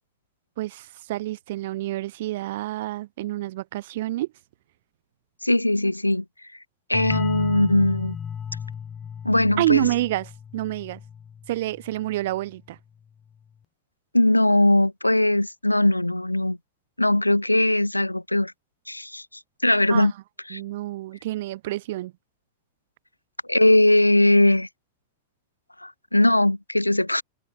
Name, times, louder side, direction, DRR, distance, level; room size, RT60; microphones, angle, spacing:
voice 1, 0.6-4.3 9.6-11.0 11.5-12.8 19.9-20.1 20.5-22.1, right 16 dB, 55° right, 4.1 m, -28 dB
voice 2, 5.4-6.2 6.9-8.2 9.2-9.9 14.1-16.6 17.0-18.5 18.9-19.3 19.6-20.1 20.5-20.6 23.5-24.7 25.8-27.2, left 1 dB, 85° left, 0.4 m, -20 dB
sound 1, 6.9-12.4, left 7 dB, 20° left, 2.1 m, -35 dB
figure-of-eight pair, 95°, 0 cm